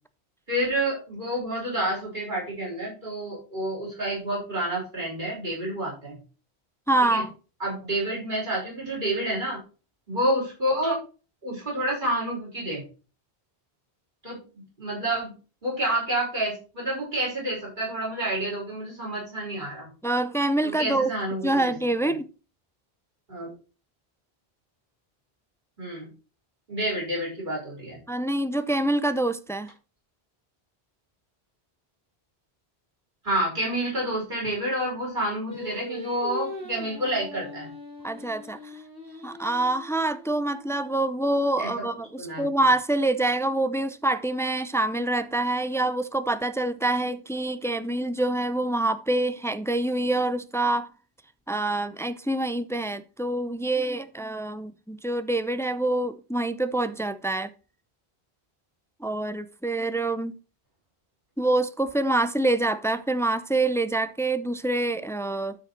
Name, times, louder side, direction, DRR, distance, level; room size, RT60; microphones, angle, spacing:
voice 1, 0.5-6.2 7.0-7.2 7.6-9.6 10.1-10.9 11.4-12.8 14.2-14.4 14.8-15.3 15.6-19.9 20.6-21.7 22.0-22.1 23.3-23.5 25.8-26.1 26.7-28.0 33.2-37.7 41.6-41.9 42.2-42.4, right 1 dB, 50° right, 6.0 m, -29 dB
voice 2, 6.9-7.3 20.0-21.1 21.4-22.3 28.1-29.7 38.0-38.6 39.2-50.9 51.5-57.5 59.0-60.3 61.4-65.6, right 2 dB, 5° left, 0.3 m, -26 dB
Singing, 35.5-40.8, left 1 dB, 90° left, 3.7 m, -40 dB
12.5 x 5.2 x 4.3 m
omnidirectional pair, 1.1 m